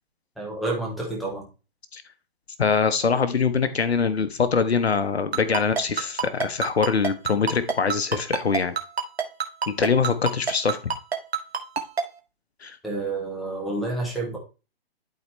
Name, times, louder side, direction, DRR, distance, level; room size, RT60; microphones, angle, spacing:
voice 1, 0.4-1.4 12.8-14.4, right 2 dB, ahead, -2 dB, 0.3 m, -29 dB
voice 2, 2.6-8.8 9.7-10.8 12.6-12.8, left 5 dB, 85° left, 12 dB, 1.0 m, -23 dB
Ringtone, 5.3-12.0, right 6 dB, 75° right, 1.8 m, -25 dB
12.0 x 4.2 x 3.2 m, 0.31 s
hypercardioid pair, 135°, 31 cm